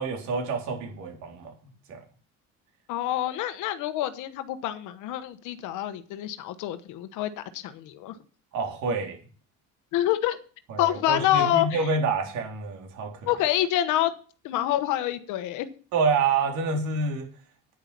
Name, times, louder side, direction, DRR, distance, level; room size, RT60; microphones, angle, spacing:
voice 1, 0.0-1.5 1.9-2.0 8.5-9.2 10.7-13.3 15.9-17.3, right 4 dB, 65° right, 3 dB, 3.7 m, -27 dB
voice 2, 2.9-8.2 9.9-10.4 10.8-11.9 13.3-14.1 14.4-15.7, left 13 dB, 70° left, 10 dB, 1.1 m, -27 dB
10.0 x 9.2 x 6.0 m, 0.39 s
cardioid pair, 170°, 31 cm